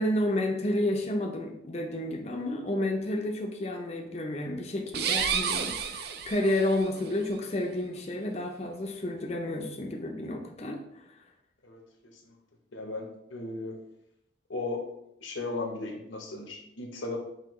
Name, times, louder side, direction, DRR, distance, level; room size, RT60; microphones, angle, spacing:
voice 1, 0.0-10.8, left 1 dB, 35° left, 1 dB, 0.5 m, -30 dB
sound 1, 4.9-6.9, right 7 dB, 55° right, 0.3 m, -30 dB
voice 2, 12.7-13.8 14.5-14.9 15.2-17.2, left 2 dB, 80° left, 2 dB, 0.9 m, -36 dB
5.7 x 2.8 x 3.0 m, 0.80 s
head